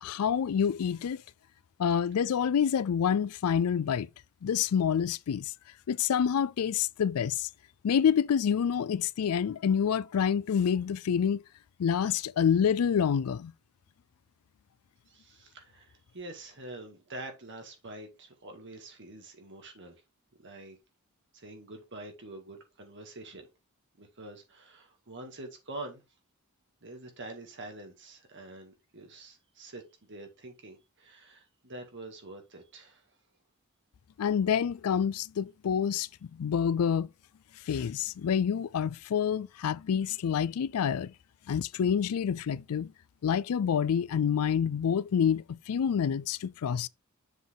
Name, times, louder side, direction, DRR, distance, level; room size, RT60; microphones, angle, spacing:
voice 1, 0.0-1.2 1.8-4.1 4.4-5.5 5.9-7.5 7.8-11.4 11.8-13.5 34.2-37.1 37.7-41.1 41.5-42.9 43.2-46.9, left 7 dB, 75° left, 0.4 m, -27 dB
voice 2, 15.1-20.0 20.4-20.8 21.3-23.5 24.0-26.0 26.8-33.0, right 2 dB, 55° right, 1.8 m, -46 dB
7.2 x 4.1 x 3.7 m
head